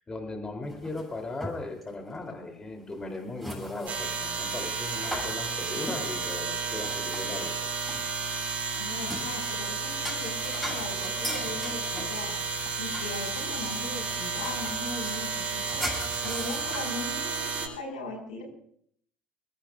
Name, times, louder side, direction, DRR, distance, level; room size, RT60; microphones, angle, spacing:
voice 1, 0.0-7.5, left 2 dB, 20° left, 3 dB, 3.4 m, -37 dB
sound 1, 0.6-1.9 2.1-2.3 2.9-7.5 7.9-9.3 9.8-16.8, equal, 5° left, 7.8 m, -40 dB
sound 2, 3.9-17.7, right 4 dB, 40° right, 4.4 m, -32 dB
voice 2, 8.8-12.4 12.8-15.9 16.2-18.4, left 2 dB, 75° left, 1 dB, 6.0 m, -39 dB
26.0 x 21.5 x 2.5 m, 0.65 s
figure-of-eight pair, 60°, 4 cm